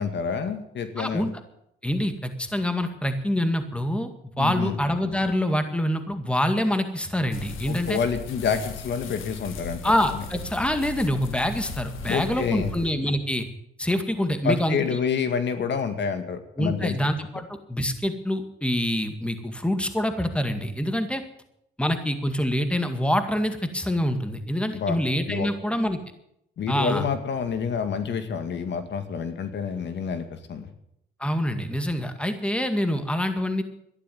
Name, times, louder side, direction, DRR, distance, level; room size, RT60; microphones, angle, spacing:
voice 1, 0.0-1.2 4.4-4.8 7.7-9.8 12.1-12.7 14.4-16.9 24.7-25.0 25.3-25.5 26.6-30.7, left 6 dB, 65° left, 8 dB, 2.0 m, -28 dB
voice 2, 1.0-1.3 1.8-4.1 4.4-8.0 9.8-13.5 13.8-14.8 16.6-21.2 21.8-26.0 26.7-27.1 31.2-33.6, equal, 5° left, 8 dB, 2.0 m, -26 dB
sound 1, 7.3-12.9, left 6 dB, 80° left, 1.9 m, -38 dB
13.0 x 11.0 x 9.3 m, 0.77 s
cardioid pair, 90°, 20 cm